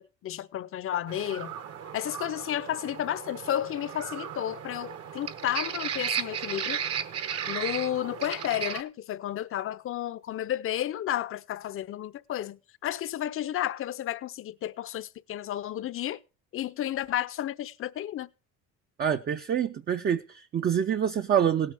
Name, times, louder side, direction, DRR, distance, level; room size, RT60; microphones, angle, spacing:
voice 1, 0.0-1.6 1.9-6.8 7.5-16.2 16.5-18.3, left 12 dB, 45° left, 0.6 m, -32 dB
sound 1, 1.1-8.8, right 8 dB, 50° right, 1.2 m, -35 dB
voice 2, 19.0-21.7, right 8 dB, 30° right, 0.6 m, -26 dB
17.5 x 8.6 x 3.5 m
cardioid pair, 115°, 30 cm